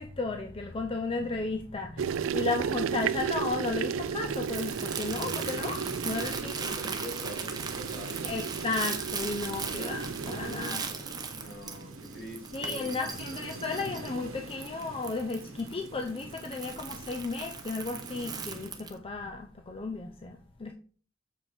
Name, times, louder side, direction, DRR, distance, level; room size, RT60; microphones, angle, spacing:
voice 1, 0.0-6.8 8.2-10.9 12.5-20.7, left 3 dB, 25° left, 0.5 m, -34 dB
sound 1, 2.0-10.7, right 7 dB, 70° right, 0.3 m, -34 dB
Crumpling crinkling, 2.6-19.0, right 5 dB, 20° right, 0.8 m, -40 dB
sound 2, 5.1-18.7, right 2 dB, 85° right, 1.1 m, -43 dB
voice 2, 6.3-8.3 11.3-13.1, equal, 55° left, 2.7 m, -44 dB
7.1 x 5.0 x 4.3 m
head